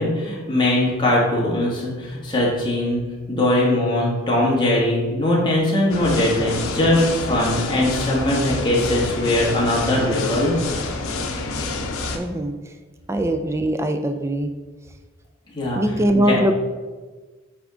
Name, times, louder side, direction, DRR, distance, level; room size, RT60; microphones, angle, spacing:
voice 1, 0.0-10.6 15.5-15.8 16.1-16.4, left 1 dB, 20° left, -5 dB, 1.6 m, -20 dB
sound 1, 5.9-12.2, left 3 dB, 80° left, 0.7 m, -28 dB
voice 2, 12.1-12.5 13.1-14.5 15.7-16.6, right 1 dB, 15° right, 6 dB, 0.4 m, -21 dB
8.4 x 3.6 x 3.7 m, 1.3 s
head